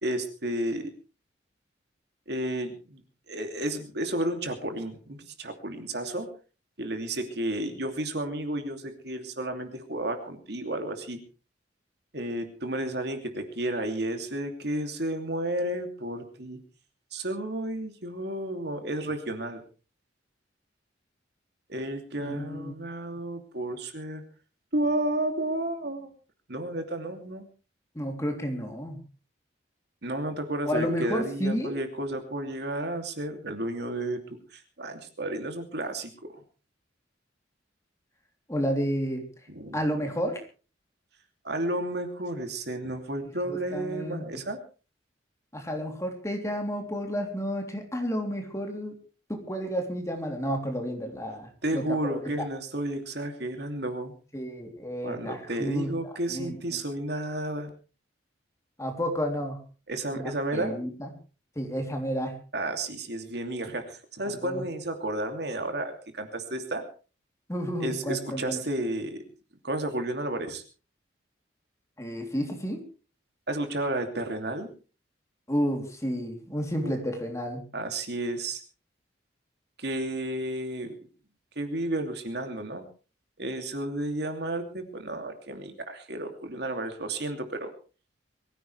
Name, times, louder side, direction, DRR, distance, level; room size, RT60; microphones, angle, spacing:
voice 1, 0.0-0.9 2.3-3.0 3.3-6.3 6.8-11.2 12.1-16.6 17.1-19.6 21.7-24.2 24.7-26.1 26.5-27.4 30.0-36.3 39.5-39.8 41.4-44.6 51.6-54.1 55.0-57.7 59.9-60.8 62.5-66.9 67.8-69.2 69.6-70.6 73.5-74.7 76.8-77.0 77.7-78.6 79.8-80.9 81.6-82.8 83.4-87.7, right 1 dB, 60° right, 6 dB, 2.8 m, -32 dB
voice 2, 22.2-22.7 27.9-29.0 30.6-31.8 38.5-39.3 39.7-40.4 43.5-44.2 45.5-48.9 49.3-52.5 54.3-56.8 58.8-59.6 60.1-61.1 61.5-62.4 64.4-64.6 67.5-68.6 72.0-72.8 75.5-77.6, equal, 15° left, 3 dB, 3.2 m, -31 dB
23.0 x 15.5 x 3.4 m, 0.35 s
head